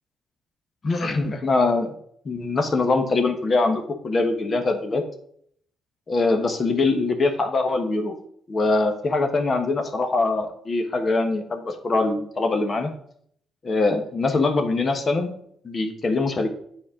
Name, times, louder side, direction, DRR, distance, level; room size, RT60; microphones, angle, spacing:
voice 1, 0.8-1.9 2.2-5.0 6.1-8.1 8.5-12.9 13.6-15.3 15.6-16.5, left 3 dB, 35° left, 6 dB, 1.2 m, -23 dB
8.5 x 4.3 x 5.0 m, 0.65 s
cardioid pair, 90°, 0 cm